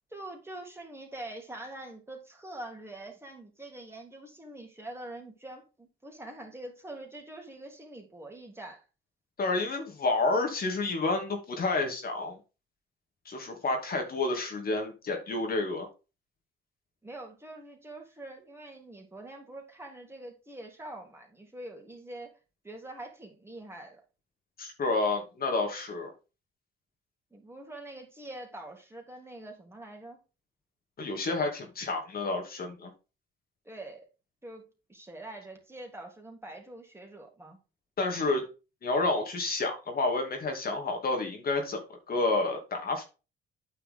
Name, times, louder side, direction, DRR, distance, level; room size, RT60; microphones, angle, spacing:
voice 1, 0.1-8.8 17.0-22.3 22.6-24.0 27.3-30.2 33.6-34.1 34.4-37.6, right 1 dB, 10° right, 3.4 m, -44 dB
voice 2, 9.4-12.4 13.3-15.9 24.6-26.1 31.0-32.9 38.0-38.4 38.8-41.8 42.1-43.0, left 3 dB, 50° left, 2.7 m, -29 dB
9.3 x 5.6 x 3.8 m
cardioid pair, 90°, 20 cm